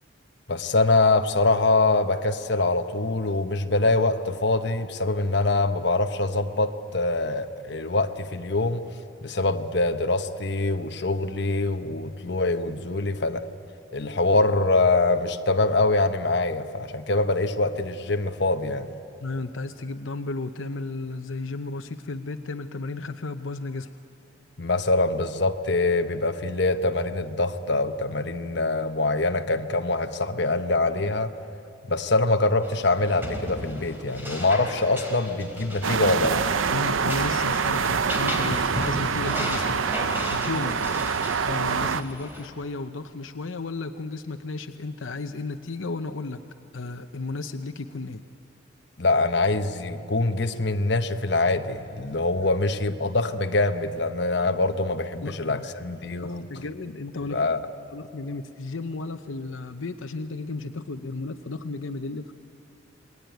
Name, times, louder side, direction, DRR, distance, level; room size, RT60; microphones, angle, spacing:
voice 1, 0.5-8.8 9.2-13.5 13.9-18.9 24.6-31.3 31.9-36.4 49.0-56.5 57.3-57.6, left 2 dB, 55° left, 1.0 m, -24 dB
voice 2, 19.2-23.9 36.7-40.8 41.4-46.4 46.7-48.2 55.2-55.6 56.2-57.5 57.9-62.3, left 3 dB, 80° left, 0.8 m, -33 dB
sound 1, 32.6-42.5, equal, 10° right, 3.6 m, -36 dB
sound 2, 35.8-42.0, right 6 dB, 75° right, 0.7 m, -25 dB
28.0 x 21.0 x 9.3 m
head